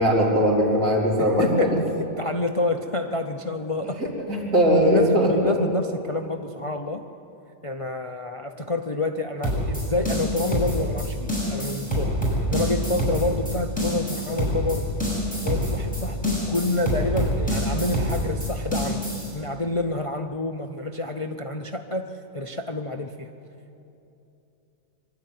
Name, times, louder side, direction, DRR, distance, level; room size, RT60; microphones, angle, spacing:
voice 1, 0.0-1.7 4.2-5.5, equal, 75° right, -4 dB, 4.5 m, -20 dB
voice 2, 1.2-1.8 2.2-4.0 4.8-7.0 7.6-14.9 15.4-19.1 19.3-23.3, left 2 dB, 35° left, 6 dB, 0.5 m, -28 dB
sound 1, 9.4-19.3, equal, 5° left, 6.6 m, -26 dB
24.5 x 12.5 x 9.5 m, 2.8 s
omnidirectional pair, 1.6 m